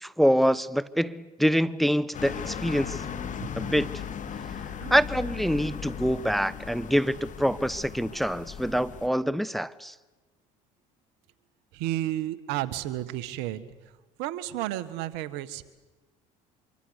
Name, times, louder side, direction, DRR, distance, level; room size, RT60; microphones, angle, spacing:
voice 1, 0.0-3.0 3.6-3.9 4.9-9.9, equal, ahead, 18 dB, 0.8 m, -25 dB
sound 1, 2.1-9.1, left 7 dB, 45° left, 2.4 m, -37 dB
voice 2, 11.7-13.7 14.2-15.6, right 14 dB, 75° right, 15 dB, 1.5 m, -32 dB
25.5 x 24.0 x 8.1 m, 1.2 s
supercardioid pair, 75°, 17 cm